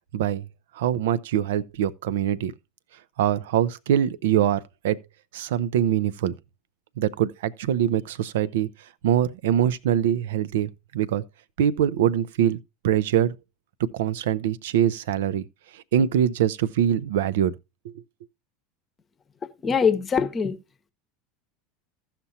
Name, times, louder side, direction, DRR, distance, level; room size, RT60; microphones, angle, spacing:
voice 1, 0.1-0.5 0.7-2.5 3.2-5.0 5.3-6.3 7.0-8.7 9.0-11.2 11.6-12.6 12.8-13.4 13.9-15.4 15.7-17.6 17.8-17.9, right 10 dB, 70° right, 0.5 m, -23 dB
voice 2, 19.6-20.6, left 6 dB, 30° left, 0.9 m, -22 dB
15.5 x 5.8 x 2.7 m
hypercardioid pair, 80°, 0 cm